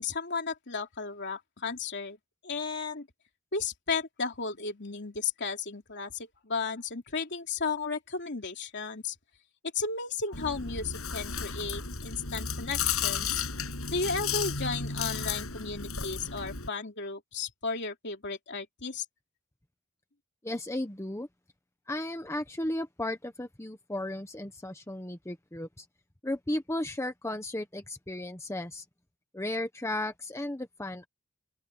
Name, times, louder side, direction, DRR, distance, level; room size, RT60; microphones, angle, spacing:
voice 1, 0.0-2.2 2.4-3.1 3.5-9.1 9.7-13.4 13.9-19.0, left 4 dB, 55° left, 3.0 m, -34 dB
Chewing mastication, 10.3-16.7, left 6 dB, 75° left, 7.2 m, -33 dB
voice 2, 20.4-21.3 21.9-25.8 26.2-28.8 29.3-31.1, left 1 dB, 15° left, 1.1 m, -35 dB
open air
head